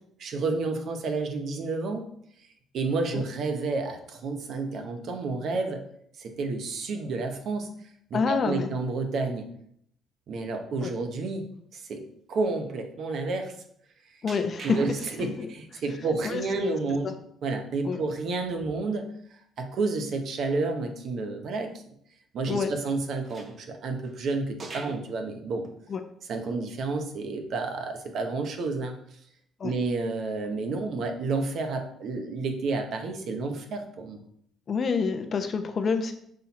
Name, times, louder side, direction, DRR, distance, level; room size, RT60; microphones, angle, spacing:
voice 1, 0.2-2.1 2.7-5.8 6.2-7.7 8.1-9.5 10.3-11.4 11.7-13.5 14.6-17.1 17.4-19.1 19.6-21.7 22.3-25.6 26.3-28.9 29.6-34.2, right 3 dB, 65° right, 4 dB, 1.1 m, -30 dB
voice 2, 8.1-8.7 10.8-10.9 14.2-14.8 15.2-15.5 16.2-16.8 17.0-17.1 17.8-18.0 22.5-22.7 25.9-26.0 29.6-29.7 34.7-36.1, left 5 dB, 45° left, 7 dB, 0.8 m, -27 dB
sound 1, 14.3-15.6 16.0-16.1 18.3-18.4 18.7-18.8 19.3-19.4 23.2-24.2 24.6-25.1 25.6-25.8 26.3-26.4 27.6-27.7 28.2-28.5 30.7-30.9, right 3 dB, 40° right, 1.2 m, -44 dB
6.4 x 4.4 x 4.2 m, 0.68 s
cardioid pair, 95°, 0 cm